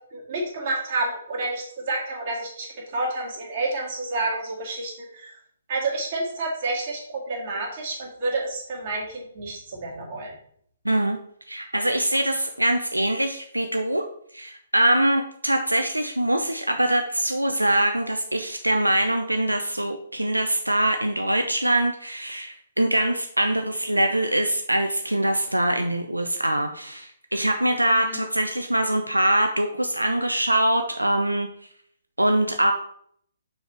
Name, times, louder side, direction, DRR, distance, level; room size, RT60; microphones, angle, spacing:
voice 1, 0.1-2.7 2.9-5.3 5.7-7.0 7.3-10.4 28.0-28.2, right 2 dB, 40° right, -3 dB, 2.2 m, -29 dB
voice 2, 10.8-11.2 11.5-14.0 14.3-31.5 32.2-32.7, right 1 dB, 90° right, 5 dB, 0.5 m, -23 dB
6.3 x 4.8 x 3.3 m, 0.64 s
figure-of-eight pair, 130°, 0 cm